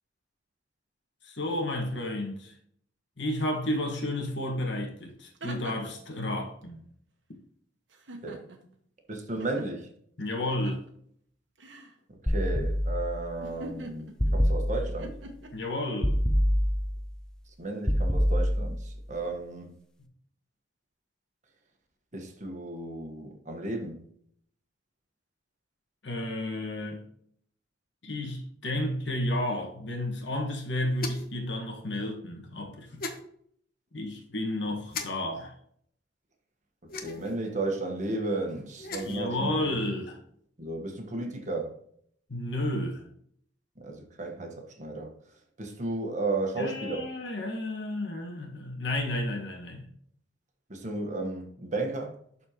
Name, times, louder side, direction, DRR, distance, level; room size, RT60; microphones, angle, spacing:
voice 1, 1.2-2.5 3.2-6.8 10.2-10.8 15.5-16.2 26.0-27.0 28.0-33.0 33.9-35.5 39.0-40.2 42.3-43.0 46.6-49.9, left 1 dB, 70° left, 1.5 m, -32 dB
sound 1, 4.6-4.7 5.1-6.1 7.9-8.7 9.4-9.7 10.4-10.9 11.6-11.9 13.4-14.4 15.0-15.5, right 1 dB, 85° right, 1.2 m, -43 dB
voice 2, 9.1-9.9 12.2-15.1 17.6-19.7 22.1-24.0 37.0-39.8 40.6-41.7 43.8-45.1 45.6-47.0 50.7-52.2, right 2 dB, 40° right, 1.2 m, -34 dB
sound 2, 12.3-13.3 14.2-15.1 16.0-17.1 17.9-18.9, equal, 5° left, 0.5 m, -26 dB
sound 3, 31.0-31.4 33.0-33.2 34.9-35.1 36.9-37.4 38.7-39.2, left 3 dB, 55° left, 0.9 m, -36 dB
11.5 x 4.3 x 2.9 m
head